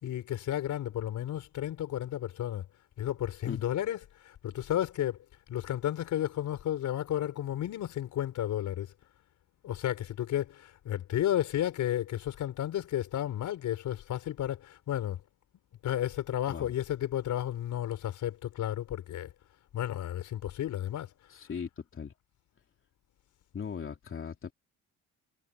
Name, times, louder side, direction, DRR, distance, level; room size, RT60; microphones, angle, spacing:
voice 1, 0.0-2.7 3.0-5.2 5.5-8.9 9.6-15.2 15.8-19.3 19.7-21.1, left 11 dB, 75° left, 4.4 m, -32 dB
voice 2, 21.3-22.1 23.5-24.5, left 6 dB, 45° left, 2.9 m, -38 dB
cardioid pair, 90°, 30 cm